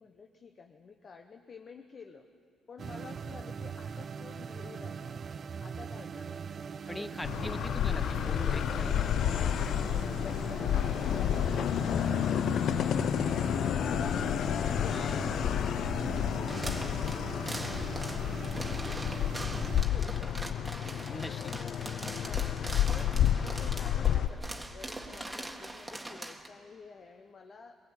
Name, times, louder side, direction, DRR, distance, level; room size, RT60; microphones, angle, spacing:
voice 1, 0.0-2.3 2.7-5.2 5.6-7.5 9.6-14.3 14.7-20.8 21.6-22.5 22.9-23.1 23.4-27.8, left 5 dB, 45° left, 5 dB, 1.1 m, -51 dB
sound 1, 2.8-19.8, right 6 dB, 45° right, 0.4 m, -41 dB
voice 2, 6.9-9.1 14.9-15.3 21.1-21.6, left 1 dB, 10° left, 13 dB, 0.7 m, -42 dB
sound 2, 7.2-24.3, left 10 dB, 70° left, 0.4 m, -30 dB
sound 3, 16.5-26.5, right 1 dB, 10° right, 1.8 m, -42 dB
22.5 x 15.5 x 8.8 m, 2.5 s
cardioid pair, 90°, 0 cm